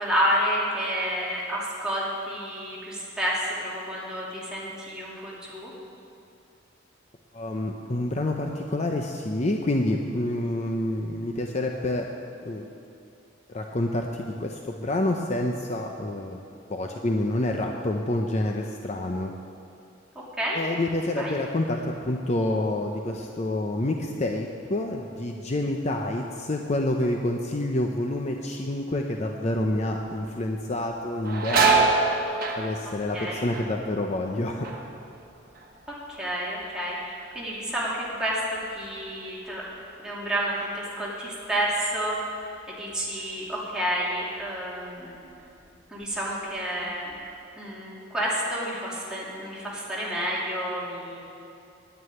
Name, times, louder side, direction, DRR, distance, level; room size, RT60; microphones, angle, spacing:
voice 1, 0.0-5.7 20.4-20.6 21.2-21.4 33.1-33.5 35.9-38.4 38.7-39.6 40.0-45.2 45.9-47.1 47.6-51.2, equal, 5° right, -7 dB, 2.7 m, -30 dB
voice 2, 7.3-12.1 12.4-12.7 13.5-16.4 16.7-19.3 20.5-31.9 32.5-34.7, left 1 dB, 35° left, 2 dB, 0.6 m, -28 dB
sound 1, 31.0-36.3 36.6-37.2 37.7-40.7 41.0-41.1 42.1-42.3 42.7-43.8 44.3-44.4 45.0-45.7 46.0-47.2, right 4 dB, 50° right, 1.3 m, -28 dB
9.7 x 9.1 x 9.1 m, 2.6 s
head